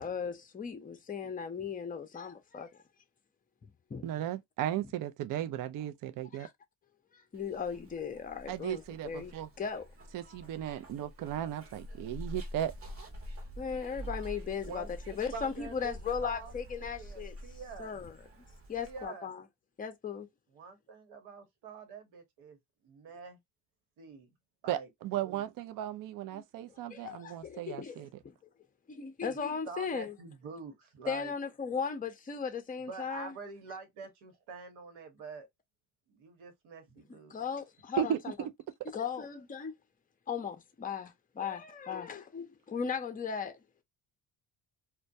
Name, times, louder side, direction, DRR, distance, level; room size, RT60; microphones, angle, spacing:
voice 1, 0.0-2.7 3.6-4.1 6.4-6.5 7.1-9.9 13.6-17.4 17.8-18.2 18.7-19.4 19.8-20.3 26.3-26.4 26.9-28.3 28.9-30.1 31.1-33.3 37.1-38.3 38.9-39.7 40.3-43.6, left 6 dB, 20° left, 0.6 m, -37 dB
voice 2, 4.0-6.5 8.5-9.5 10.1-12.7 24.7-28.1 38.0-38.5, right 11 dB, 45° right, 0.4 m, -35 dB
Zipper (clothing), 7.3-19.1, equal, 30° right, 0.9 m, -46 dB
voice 3, 15.3-16.0 16.2-16.5 16.8-18.0 18.8-19.3 20.5-22.6 22.8-23.4 24.0-24.3 24.6-24.9 25.2-25.4 29.3-29.4 29.6-31.3 32.9-35.5 36.1-37.3, right 4 dB, 75° right, 1.1 m, -46 dB
2.2 x 2.2 x 2.6 m
supercardioid pair, 75°, 47 cm